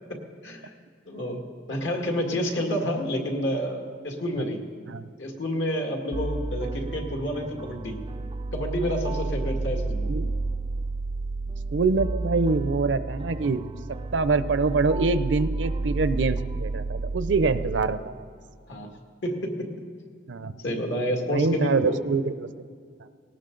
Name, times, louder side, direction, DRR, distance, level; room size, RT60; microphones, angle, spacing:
voice 1, 0.1-0.7 1.1-4.6 5.2-8.0 8.5-10.1 18.7-18.9 19.2-19.7 20.6-22.0, equal, 75° left, 2 dB, 2.0 m, -29 dB
sound 1, 6.1-17.8, right 3 dB, 25° right, 0.3 m, -31 dB
voice 2, 10.0-10.3 11.7-13.6 14.1-18.1 20.3-20.6 21.3-22.5, right 4 dB, 70° right, 13 dB, 0.6 m, -25 dB
18.5 x 18.0 x 3.9 m, 2.1 s
head